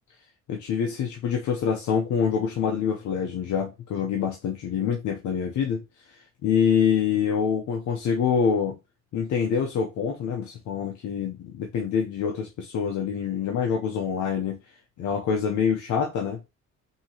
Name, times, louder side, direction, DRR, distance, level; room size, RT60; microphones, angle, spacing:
voice 1, 0.5-5.8 6.4-8.8 9.1-14.6 15.0-16.4, left 7 dB, 75° left, 0.8 m, -26 dB
5.4 x 2.9 x 2.9 m
cardioid pair, 90°, 30 cm